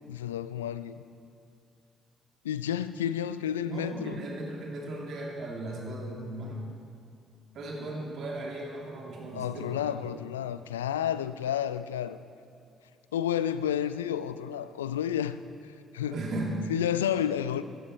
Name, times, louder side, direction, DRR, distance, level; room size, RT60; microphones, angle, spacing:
voice 1, 0.1-1.0 2.4-4.2 9.3-12.2 13.1-16.2 16.7-17.6, left 10 dB, 85° left, 14 dB, 0.3 m, -31 dB
voice 2, 3.6-6.7 7.5-9.9 16.0-16.6, right 1 dB, 60° right, -1 dB, 2.7 m, -36 dB
15.0 x 12.5 x 4.4 m, 2.4 s
hypercardioid pair, 45°, 0 cm